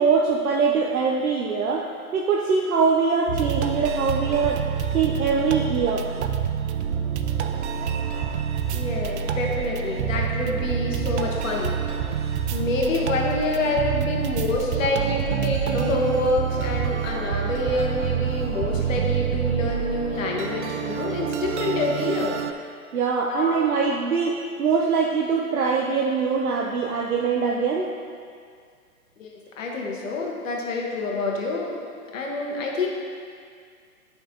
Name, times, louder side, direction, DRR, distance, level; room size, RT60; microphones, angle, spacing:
voice 1, 0.0-1.9 2.1-4.6 4.9-6.1 22.9-27.9, right 5 dB, 70° right, -1 dB, 0.8 m, -23 dB
sound 1, 3.3-22.5, right 8 dB, 50° right, 0.5 m, -27 dB
voice 2, 8.7-11.8 12.1-22.4 23.3-23.8 29.2-29.3 29.6-31.8 32.1-32.9, left 2 dB, 60° left, -1 dB, 1.5 m, -27 dB
9.6 x 5.6 x 2.9 m, 2.1 s
hypercardioid pair, 130°, 44 cm